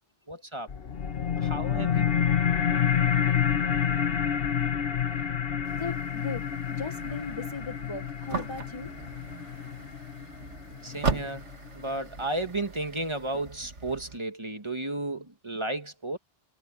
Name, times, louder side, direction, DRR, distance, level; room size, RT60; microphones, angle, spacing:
voice 1, 0.3-0.7 1.4-2.0 10.8-11.4 11.7-16.2, right 2 dB, 25° right, 1.7 m, -33 dB
sound 1, 0.7-11.7, left 8 dB, 55° left, 1.2 m, -28 dB
sound 2, 5.6-14.2, right 4 dB, 90° right, 2.2 m, -38 dB
voice 2, 5.8-8.9, left 4 dB, 30° left, 0.8 m, -38 dB
omnidirectional pair, 1.2 m